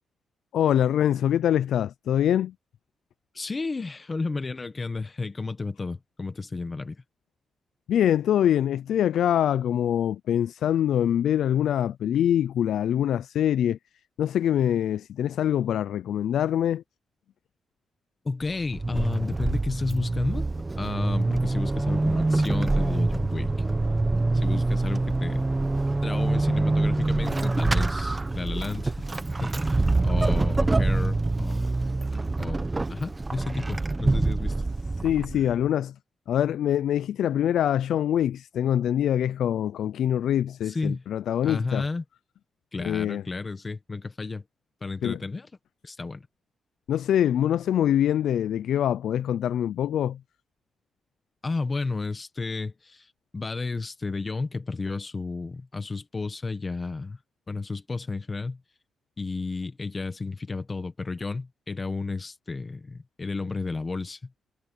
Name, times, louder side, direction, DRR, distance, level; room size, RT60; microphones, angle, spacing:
voice 1, 0.5-2.5 7.9-13.8 14.2-16.8 35.0-36.0 36.3-41.8 42.8-43.2 45.0-45.2 46.9-50.2, left 10 dB, 85° left, 0.4 m, -24 dB
voice 2, 3.3-7.0 18.2-20.5 20.8-23.5 24.3-25.4 26.0-29.0 29.4-31.7 32.4-32.6 32.9-34.5 40.7-41.0 41.4-42.0 42.7-44.4 44.8-45.5 45.8-46.3 51.4-53.1 53.3-57.2 57.5-58.6 59.2-64.3, left 3 dB, 25° left, 1.4 m, -32 dB
Vehicle / Accelerating revving vroom / Squeak, 18.4-35.6, right 2 dB, 15° right, 1.0 m, -25 dB
wide cardioid pair, 160°, 0 cm